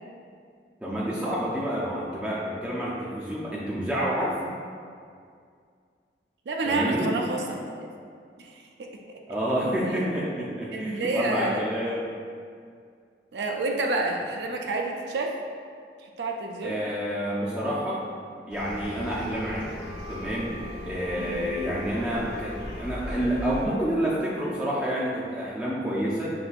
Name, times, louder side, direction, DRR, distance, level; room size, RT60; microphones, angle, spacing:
voice 1, 0.8-4.3 6.6-7.1 9.3-12.0 16.6-18.0 18.5-19.7 20.1-26.3, equal, 5° right, -8 dB, 0.5 m, -28 dB
voice 2, 6.5-7.9 8.4-9.2 10.7-11.6 13.3-15.3 16.0-16.8 21.2-21.4, right 2 dB, 75° right, 1 dB, 0.4 m, -29 dB
sound 1, 18.5-23.7, left 1 dB, 75° left, 0.8 m, -38 dB
6.0 x 3.3 x 2.4 m, 2.2 s
head